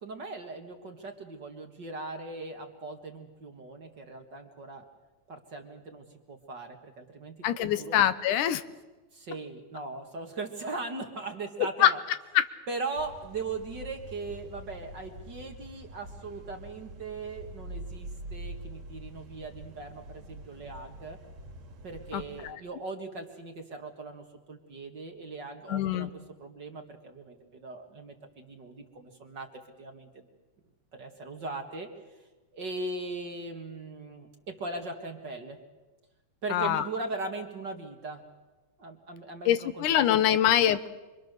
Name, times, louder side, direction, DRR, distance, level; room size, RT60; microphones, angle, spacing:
voice 1, 0.0-4.8 5.3-8.0 9.1-12.0 12.7-21.2 21.8-29.5 29.8-30.3 30.9-31.9 32.5-35.6 36.4-38.2 38.8-40.0 40.3-40.5, right 3 dB, 40° right, 4 dB, 2.1 m, -39 dB
voice 2, 7.4-8.6 11.8-11.9 12.3-12.4 22.1-22.6 25.7-26.1 36.5-36.9 39.5-40.9, left 11 dB, 85° left, 12 dB, 2.5 m, -24 dB
sound 1, 13.0-22.5, right 1 dB, 60° right, 3.2 m, -45 dB
27.0 x 24.5 x 6.7 m, 1.2 s
omnidirectional pair, 3.5 m